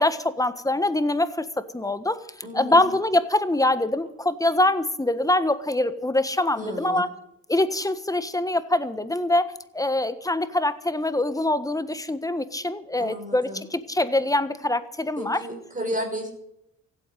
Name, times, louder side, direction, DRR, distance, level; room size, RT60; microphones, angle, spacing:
voice 1, 0.0-1.5 1.7-2.2 2.5-7.1 7.5-15.4, left 1 dB, 10° left, 12 dB, 1.4 m, -24 dB
voice 2, 2.4-2.9 6.6-7.0 13.0-13.6 15.2-16.3, equal, 25° right, 2 dB, 6.3 m, -33 dB
16.0 x 9.1 x 9.8 m, 0.78 s
cardioid pair, 90°, 30 cm